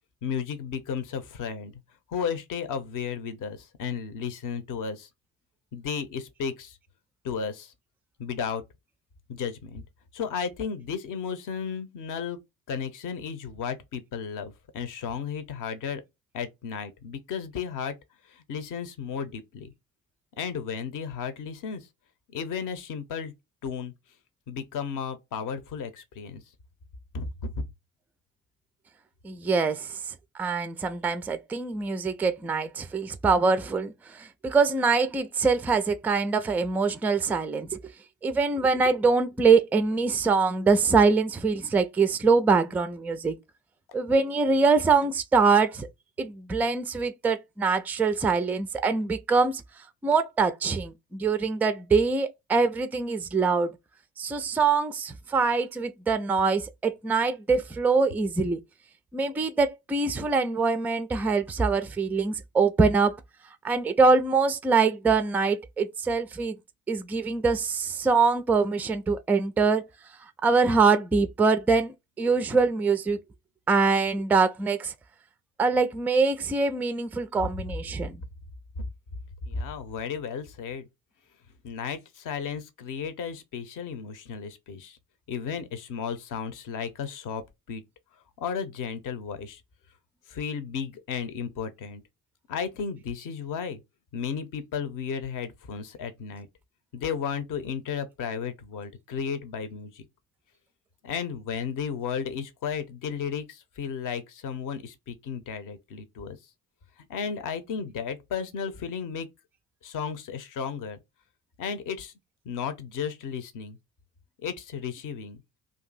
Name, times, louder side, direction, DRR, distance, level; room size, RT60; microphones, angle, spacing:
voice 1, 0.2-1.8 2.1-5.1 5.7-6.8 7.2-7.7 8.2-8.6 9.3-9.8 10.1-12.4 12.7-16.0 16.3-17.9 18.3-19.7 20.4-21.9 22.3-23.3 23.6-23.9 24.5-26.4 27.1-27.3 78.8-78.9 79.5-80.9 81.6-85.0 85.3-87.8 88.4-89.6 90.3-92.0 92.5-93.8 94.1-96.5 96.9-100.0 101.0-106.4 107.1-109.3 109.8-111.0 111.6-112.1 112.4-113.8 114.4-115.4, left 6 dB, 45° left, 0.8 m, -34 dB
voice 2, 29.2-30.0 30.4-37.8 38.2-43.4 43.9-45.9 46.2-49.6 50.0-53.7 54.2-58.6 59.1-63.2 63.6-66.6 66.9-69.8 70.4-73.2 73.7-74.9 75.6-78.2, right 4 dB, 5° right, 0.3 m, -24 dB
2.6 x 2.6 x 3.9 m
figure-of-eight pair, 45°, 43 cm